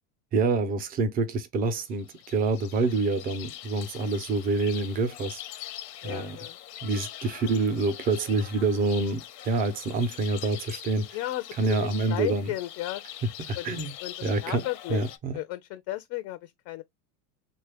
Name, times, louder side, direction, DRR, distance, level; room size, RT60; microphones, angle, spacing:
voice 1, 0.3-5.4 6.0-6.4 6.8-11.1 11.6-12.5 13.5-13.9 14.2-14.6 14.9-15.4, right 3 dB, 20° right, 0.3 m, -27 dB
sound 1, 1.9-15.2, left 13 dB, 85° left, 0.8 m, -43 dB
voice 2, 6.0-6.6 11.1-13.0 13.6-13.7 14.0-15.0 15.3-16.8, left 16 dB, 45° left, 0.4 m, -34 dB
3.2 x 2.2 x 3.3 m
supercardioid pair, 135°, 47 cm